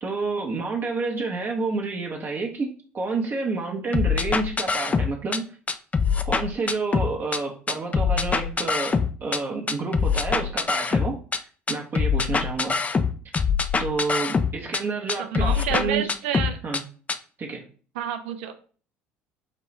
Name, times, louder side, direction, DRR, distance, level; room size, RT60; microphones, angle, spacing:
voice 1, 0.0-5.6 6.2-11.2 11.7-12.8 13.8-16.1 16.6-16.8 17.4-17.6, right 3 dB, 35° right, 0.6 m, -29 dB
sound 1, 3.9-5.4 5.7-7.4 7.7-9.4 9.7-11.4 11.7-14.8 15.1-16.8 17.1-17.2, left 5 dB, 20° left, 0.3 m, -24 dB
voice 2, 15.2-16.6 18.0-18.5, right 8 dB, 75° right, 0.4 m, -29 dB
4.9 x 2.3 x 3.0 m
hypercardioid pair, 65°, 6 cm